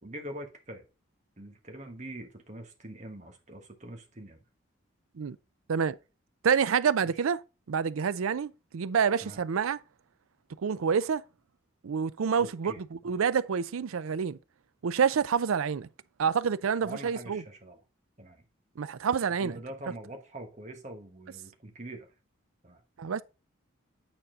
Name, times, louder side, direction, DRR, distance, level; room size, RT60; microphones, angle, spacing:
voice 1, 0.0-0.8 1.4-4.4 7.0-7.1 9.2-9.4 12.4-13.2 16.8-17.8 18.2-18.4 19.4-22.1 22.6-22.8, right 1 dB, 35° right, 1.4 m, -44 dB
voice 2, 6.4-7.4 7.7-9.8 10.6-11.2 11.8-14.4 14.8-15.9 16.2-17.4 18.8-19.6 23.0-23.2, right 6 dB, 90° right, 0.5 m, -27 dB
8.9 x 4.2 x 3.8 m
head